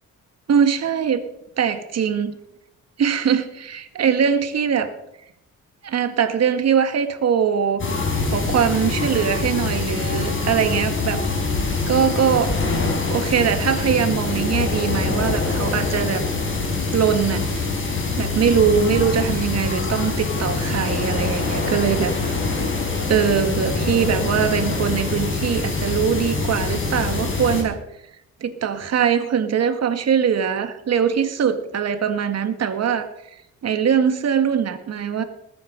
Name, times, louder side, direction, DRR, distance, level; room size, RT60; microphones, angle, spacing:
voice 1, 0.5-1.2 1.6-2.4 3.0-4.9 5.8-7.8 8.3-11.2 11.9-12.5 13.1-16.2 16.9-17.4 18.2-22.1 23.1-27.8 28.4-33.1 33.6-35.2, right 7 dB, 60° right, 8 dB, 1.9 m, -21 dB
sound 1, 7.8-27.6, left 3 dB, 40° left, 5.0 m, -24 dB
19.5 x 9.7 x 5.4 m, 0.79 s
cardioid pair, 90°, 30 cm